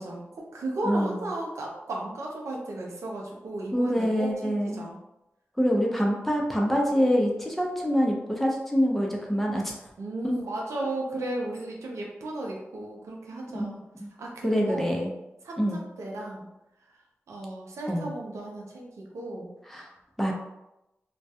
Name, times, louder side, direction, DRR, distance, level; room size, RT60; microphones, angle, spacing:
voice 1, 0.0-5.0 10.0-13.8 14.2-14.9 15.4-16.5 16.9-19.5, right 2 dB, 85° right, -1 dB, 0.5 m, -35 dB
voice 2, 0.8-1.2 3.7-4.8 5.6-9.7 10.2-10.3 13.5-13.6 14.0-14.1 14.4-15.1 15.6-15.9 17.9-18.1 19.7-19.9 20.2-20.3, equal, 5° left, -1 dB, 0.6 m, -25 dB
2.3 x 2.2 x 2.7 m, 0.92 s
cardioid pair, 45°, 5 cm